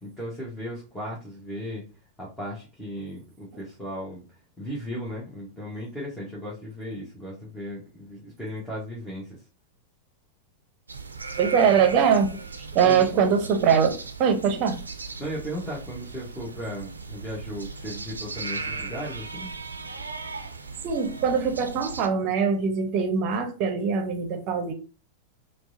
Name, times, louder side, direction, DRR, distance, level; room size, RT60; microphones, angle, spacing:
voice 1, 0.0-1.8 2.2-4.2 4.6-9.4 12.8-13.1 15.2-19.5, equal, 10° left, 1.3 m, -36 dB
sound 1, 10.9-22.1, right 4 dB, 75° right, 0.5 m, -37 dB
voice 2, 11.4-12.4 12.7-14.8 20.8-24.7, right 6 dB, 40° right, 0.8 m, -22 dB
4.6 x 2.4 x 2.6 m
figure-of-eight pair, 90°, 0 cm